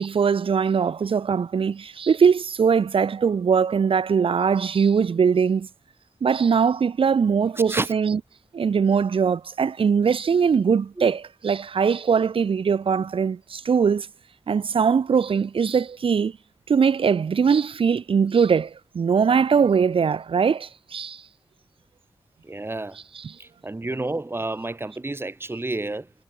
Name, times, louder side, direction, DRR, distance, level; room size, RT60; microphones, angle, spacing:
voice 1, 0.0-5.7 6.2-8.2 8.5-14.1 14.5-16.4 16.7-21.2 23.1-23.4, right 6 dB, 80° right, 2.2 m, -21 dB
voice 2, 22.4-23.0 23.4-26.1, right 2 dB, 25° right, 4.5 m, -30 dB
wide cardioid pair, 80°, 9 cm